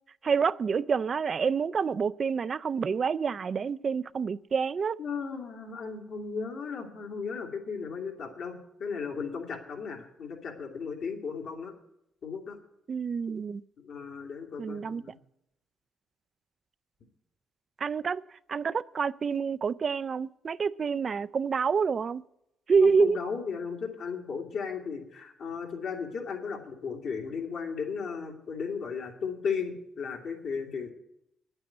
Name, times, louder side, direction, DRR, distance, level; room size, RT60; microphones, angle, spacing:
voice 1, 0.2-5.0 12.9-13.6 14.6-15.0 17.8-18.2 18.5-22.2 22.7-23.2, right 5 dB, 45° right, 17 dB, 0.4 m, -27 dB
voice 2, 5.0-11.7 12.2-12.6 13.8-15.2 22.8-30.9, left 5 dB, 70° left, 1 dB, 2.6 m, -35 dB
9.6 x 8.8 x 9.2 m, 0.82 s
cardioid pair, 90°, 0 cm